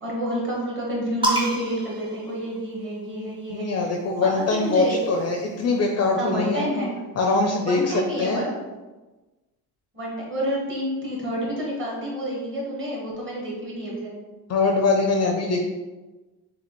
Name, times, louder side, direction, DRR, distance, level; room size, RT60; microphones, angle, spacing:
voice 1, 0.0-3.7 4.2-5.0 6.2-6.9 7.7-8.5 9.9-14.1, equal, 30° right, -4 dB, 1.3 m, -29 dB
sound 1, 1.2-3.0 4.1-5.8, right 1 dB, 10° right, 0.7 m, -30 dB
voice 2, 3.5-6.6 7.2-8.4 14.5-15.6, left 3 dB, 40° left, 2 dB, 0.4 m, -23 dB
5.9 x 2.4 x 2.9 m, 1.2 s
cardioid pair, 160°, 40 cm